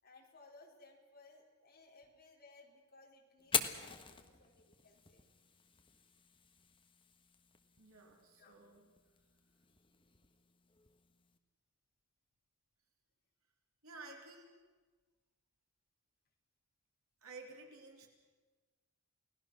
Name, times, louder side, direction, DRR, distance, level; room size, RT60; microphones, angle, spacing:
voice 1, 0.0-5.3 8.4-8.5, left 3 dB, 45° left, -1 dB, 4.3 m, -61 dB
Fire, 3.4-11.4, left 6 dB, 25° left, 1.2 m, -44 dB
voice 2, 7.8-8.9 13.8-14.5 17.2-18.1, right 3 dB, 70° right, 1 dB, 3.5 m, -53 dB
30.0 x 18.0 x 6.2 m, 1.4 s
head